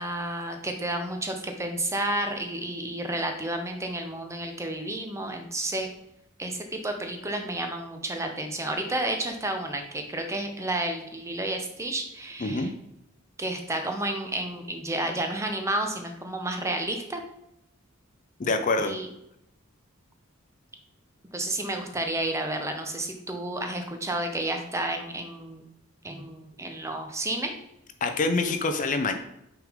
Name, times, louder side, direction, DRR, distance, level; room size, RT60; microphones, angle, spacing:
voice 1, 0.0-5.9 6.4-12.7 13.4-17.2 18.8-19.1 21.3-25.6 26.0-27.5, right 1 dB, 15° right, 5 dB, 0.7 m, -31 dB
voice 2, 12.4-12.7 18.4-19.0 28.0-29.1, left 3 dB, 35° left, 7 dB, 0.4 m, -25 dB
6.1 x 3.7 x 4.9 m, 0.82 s
head